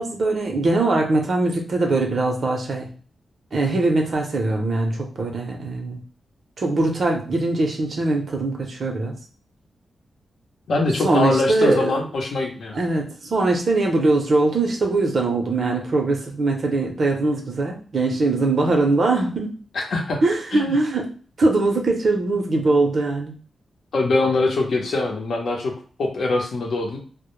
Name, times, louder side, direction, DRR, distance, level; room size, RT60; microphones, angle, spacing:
voice 1, 0.0-2.9 3.5-6.0 6.6-9.2 11.0-11.9 12.7-19.6 20.2-21.1 21.4-23.3, right 2 dB, 55° right, 1 dB, 0.6 m, -21 dB
voice 2, 10.7-12.8 19.7-20.2 20.5-20.7 23.9-25.7 26.0-27.0, left 2 dB, 75° left, 1 dB, 0.7 m, -23 dB
2.1 x 2.0 x 3.0 m, 0.42 s
wide cardioid pair, 105°, 0 cm